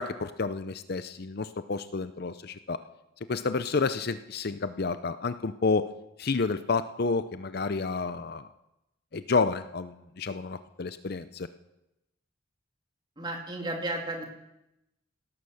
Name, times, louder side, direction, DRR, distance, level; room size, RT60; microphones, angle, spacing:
voice 1, 0.0-2.8 3.3-5.9 6.2-8.5 9.1-11.5, left 4 dB, 50° left, 12 dB, 0.6 m, -30 dB
voice 2, 13.2-14.3, right 2 dB, 25° right, 2 dB, 2.5 m, -33 dB
17.5 x 12.5 x 6.5 m, 0.91 s
head